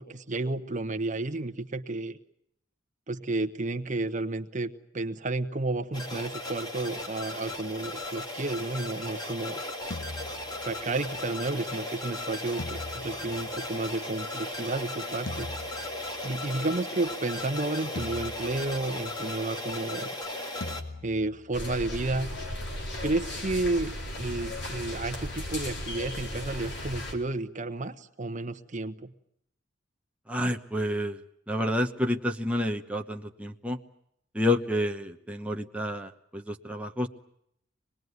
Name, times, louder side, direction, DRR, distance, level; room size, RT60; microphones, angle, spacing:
voice 1, 0.0-2.2 3.1-9.6 10.6-15.5 16.2-20.1 21.0-22.3 23.0-29.1, right 2 dB, 40° right, 10 dB, 1.1 m, -31 dB
sound 1, 5.9-20.8, left 1 dB, 20° left, 2.6 m, -36 dB
sound 2, 9.9-11.1 12.6-14.1 15.3-16.5 18.0-19.2 20.6-21.7, left 2 dB, 85° left, 1.1 m, -41 dB
sound 3, 21.5-27.1, left 1 dB, 65° left, 4.6 m, -36 dB
voice 2, 30.3-31.2 31.5-33.8 34.3-37.1, left 1 dB, 5° right, 2 dB, 1.0 m, -29 dB
25.0 x 20.5 x 9.5 m, 0.74 s
head